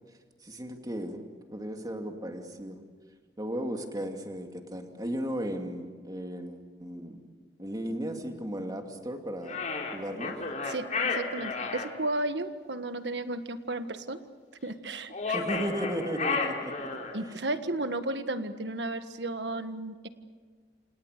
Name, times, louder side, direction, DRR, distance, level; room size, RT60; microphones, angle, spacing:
voice 1, 0.4-1.2 1.5-2.8 3.4-7.2 7.6-9.6 9.9-10.3 15.3-17.1, equal, 20° right, 4 dB, 2.7 m, -35 dB
sound 1, 9.5-11.9 15.1-17.2, left 4 dB, 45° left, 3.8 m, -32 dB
voice 2, 10.6-14.2 14.6-15.3 17.1-20.1, right 2 dB, 75° right, 9 dB, 1.6 m, -34 dB
28.5 x 27.5 x 6.8 m, 1.5 s
head